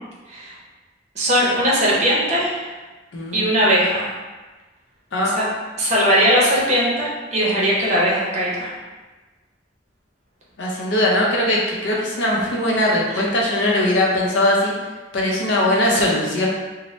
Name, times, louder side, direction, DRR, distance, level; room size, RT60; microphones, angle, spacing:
voice 1, 1.1-2.7 3.3-4.1 5.3-5.5 5.8-8.7, equal, 40° right, -5 dB, 0.6 m, -19 dB
voice 2, 3.1-3.5 5.1-5.3 10.6-14.7 15.1-16.5, left 1 dB, 75° left, -2 dB, 0.6 m, -20 dB
2.7 x 2.0 x 3.1 m, 1.2 s
head